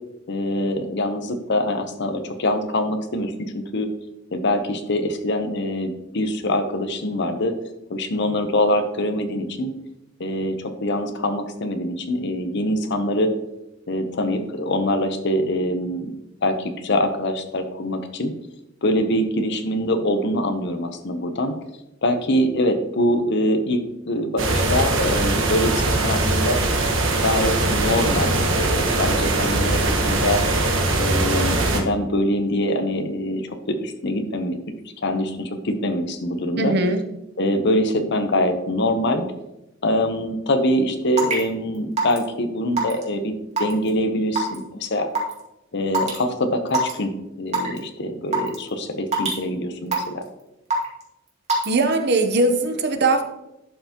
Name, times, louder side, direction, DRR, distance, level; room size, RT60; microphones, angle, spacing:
voice 1, 0.3-3.9 4.3-7.5 7.9-9.7 10.2-13.3 13.9-16.1 16.4-18.3 18.8-21.5 22.0-23.8 24.1-26.6 27.2-30.4 31.0-34.7 35.0-36.7 37.4-39.3 39.8-43.3 43.6-45.1 45.7-50.2, left 1 dB, 60° left, 7 dB, 0.9 m, -24 dB
sound 1, 24.4-31.8, right 2 dB, 75° right, 1.3 m, -21 dB
voice 2, 36.6-37.0 51.7-53.2, right 2 dB, 55° right, 7 dB, 0.9 m, -20 dB
Raindrop / Water tap faucet / Drip, 41.2-41.4 42.0-42.2 42.8-43.0 43.6-43.9 44.4-44.6 45.1-45.3 45.9-46.2 46.7-46.9 47.5-47.8 48.3-48.6 49.1-49.4 49.9-50.2 50.7-51.0 51.5-51.7, right 3 dB, 35° right, 2.2 m, -22 dB
11.5 x 5.7 x 3.0 m, 0.91 s
head